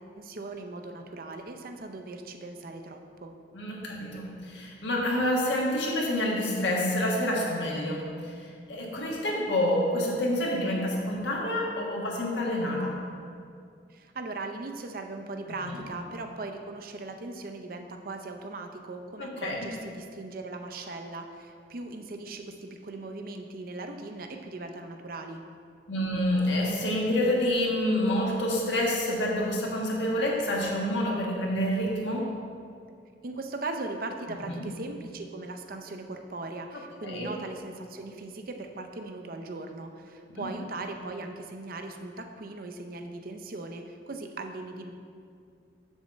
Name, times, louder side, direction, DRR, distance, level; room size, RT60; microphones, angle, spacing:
voice 1, 0.0-3.3 13.9-25.4 33.2-44.9, right 2 dB, 50° right, 5 dB, 0.6 m, -39 dB
voice 2, 3.5-13.0 15.5-15.8 19.2-19.7 25.9-32.3 34.4-34.7 37.0-37.3 40.4-40.5, left 1 dB, 80° left, -2 dB, 1.5 m, -28 dB
7.1 x 4.1 x 6.4 m, 2.3 s
head